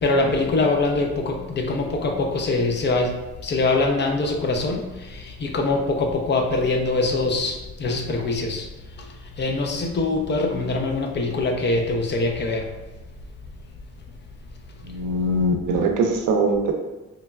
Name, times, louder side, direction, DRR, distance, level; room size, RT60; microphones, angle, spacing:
voice 1, 0.0-3.2 3.4-4.8 5.1-8.6 9.4-12.7, left 3 dB, 35° left, 3 dB, 0.4 m, -23 dB
voice 2, 14.8-16.7, right 2 dB, 85° right, 3 dB, 0.5 m, -22 dB
3.1 x 2.2 x 2.3 m, 1.1 s
cardioid pair, 90°, 30 cm